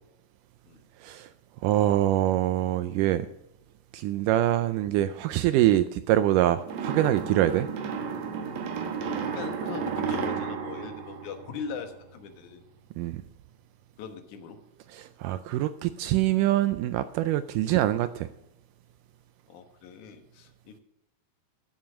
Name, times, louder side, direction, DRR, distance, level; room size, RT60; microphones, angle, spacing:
voice 1, 1.0-1.3 1.6-3.3 3.9-7.7 13.0-13.2 14.9-18.3, right 13 dB, 85° right, 12 dB, 1.9 m, -24 dB
sound 1, 6.7-12.0, right 6 dB, 60° right, 2.3 m, -32 dB
voice 2, 9.3-12.6 14.0-14.6 19.5-20.8, left 6 dB, 65° left, 7 dB, 2.5 m, -40 dB
13.0 x 7.3 x 6.2 m, 0.89 s
omnidirectional pair, 4.1 m